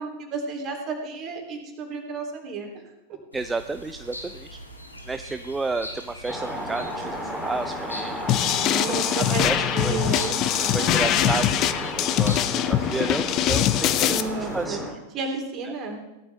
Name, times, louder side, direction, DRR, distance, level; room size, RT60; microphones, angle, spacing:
voice 1, 0.0-2.7 8.6-11.5 14.0-14.9 15.1-16.0, right 4 dB, 35° right, 2 dB, 3.2 m, -32 dB
sound 1, 3.3-14.7, equal, 85° left, 1.9 m, -42 dB
voice 2, 3.3-4.6 5.1-8.3 8.7-8.9 9.4-10.0 10.7-14.8, right 3 dB, 10° right, 9 dB, 0.5 m, -32 dB
sound 2, 6.3-14.9, equal, 5° left, 3.3 m, -33 dB
sound 3, 8.3-14.2, left 12 dB, 35° left, 0.7 m, -23 dB
17.0 x 12.0 x 3.5 m, 1.0 s
figure-of-eight pair, 90°, 0 cm